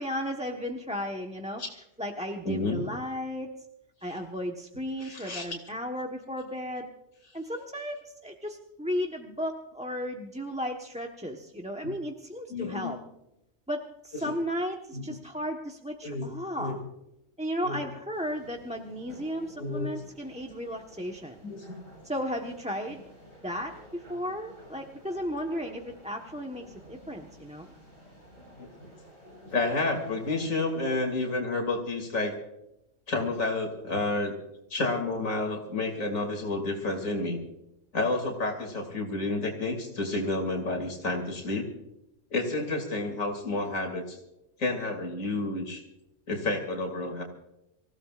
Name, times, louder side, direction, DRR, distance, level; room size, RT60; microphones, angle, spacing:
voice 1, 0.0-1.6 2.0-3.5 4.0-6.9 7.3-13.0 13.7-16.8 17.4-21.4 22.0-23.0 23.4-27.7, equal, 5° right, 2 dB, 1.1 m, -34 dB
voice 2, 2.4-2.8 4.0-4.2 5.0-5.5 11.8-11.9 12.5-12.9 14.2-14.3 14.9-15.0 16.0-16.3 16.6-16.8 17.6-17.8 19.6-19.9 21.4-21.7 28.6-28.7 29.5-32.3 33.1-34.3 34.7-37.4 37.9-41.7 42.3-44.2 44.6-45.8 46.3-47.2, left 2 dB, 85° left, 2 dB, 3.1 m, -30 dB
sound 1, 18.1-31.3, equal, 90° right, 7.6 m, -52 dB
27.0 x 16.0 x 2.5 m, 0.87 s
omnidirectional pair, 1.4 m